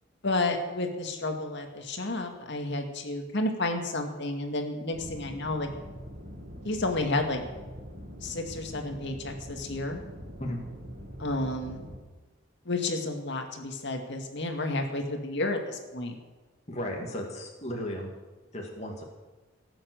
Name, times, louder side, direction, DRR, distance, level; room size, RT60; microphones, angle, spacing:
voice 1, 0.2-5.7 6.6-7.4 8.2-10.0 11.2-11.9 12.7-16.1, left 2 dB, 60° left, 4 dB, 2.2 m, -31 dB
sound 1, 4.9-12.0, equal, 45° right, 2.2 m, -43 dB
voice 2, 16.7-18.1 18.5-19.0, equal, 35° left, 0 dB, 2.3 m, -35 dB
18.0 x 7.8 x 7.9 m, 1.3 s
head